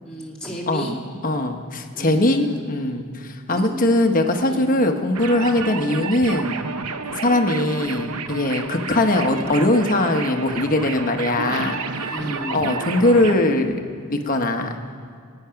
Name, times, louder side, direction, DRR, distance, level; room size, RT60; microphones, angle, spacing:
voice 1, 0.0-0.9 1.9-2.6 3.5-3.8 4.4-4.7 8.5-8.8 12.1-12.6, equal, 5° left, -5 dB, 2.6 m, -33 dB
voice 2, 1.2-6.6 7.2-12.1 12.5-13.8 14.1-14.7, left 1 dB, 40° left, 5 dB, 1.1 m, -21 dB
sound 1, 5.1-13.3, right 5 dB, 90° right, 0.8 m, -31 dB
21.5 x 9.9 x 5.8 m, 2.1 s
head